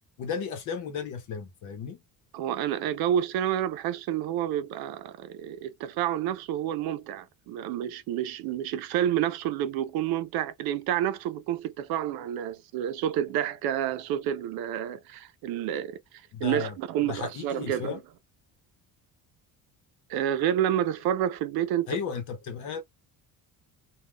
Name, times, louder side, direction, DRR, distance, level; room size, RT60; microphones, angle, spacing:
voice 1, 0.2-2.0 16.3-16.7 17.0-18.0 21.9-22.8, left 6 dB, 55° left, 0.9 m, -34 dB
voice 2, 2.3-18.0 20.1-22.0, right 10 dB, 80° right, 0.6 m, -29 dB
3.5 x 2.3 x 2.2 m
cardioid pair, 175°, 36 cm